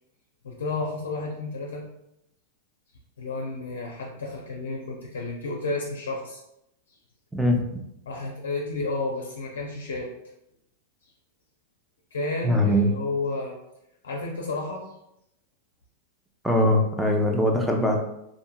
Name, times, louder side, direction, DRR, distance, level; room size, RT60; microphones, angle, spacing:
voice 1, 0.4-1.8 3.2-6.4 8.1-10.1 12.1-13.5 14.0-14.9, left 3 dB, 85° left, -1 dB, 0.4 m, -31 dB
voice 2, 7.3-7.8 12.4-12.9 16.4-18.0, left 1 dB, ahead, 0 dB, 0.5 m, -22 dB
2.7 x 2.5 x 2.2 m, 0.82 s
hypercardioid pair, 115°, 0 cm